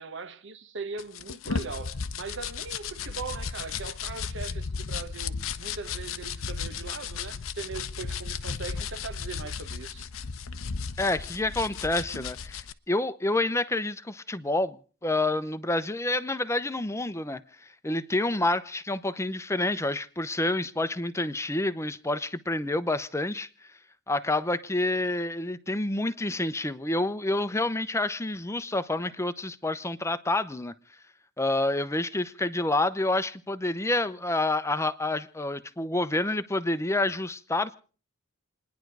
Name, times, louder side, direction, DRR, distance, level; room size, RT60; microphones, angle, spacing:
voice 1, 0.0-10.1, right 4 dB, 60° right, 1.2 m, -40 dB
sound 1, 1.0-12.7, left 5 dB, 80° left, 0.8 m, -35 dB
voice 2, 11.0-23.5 24.1-30.7 31.4-37.7, left 2 dB, 15° left, 0.7 m, -28 dB
28.5 x 10.5 x 4.7 m
head